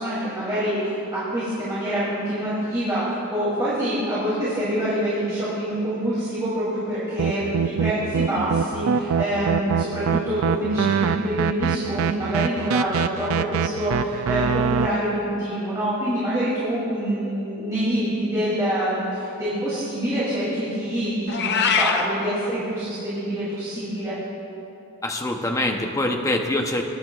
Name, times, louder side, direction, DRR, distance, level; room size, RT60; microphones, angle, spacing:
voice 1, 0.0-24.1, equal, 15° right, -11 dB, 2.9 m, -26 dB
sound 1, 7.2-14.9, right 6 dB, 65° right, 0.3 m, -24 dB
Meow, 21.3-22.1, left 6 dB, 50° left, 0.7 m, -21 dB
voice 2, 25.0-26.8, left 1 dB, 15° left, 2 dB, 0.7 m, -24 dB
20.0 x 10.5 x 2.4 m, 2.9 s
head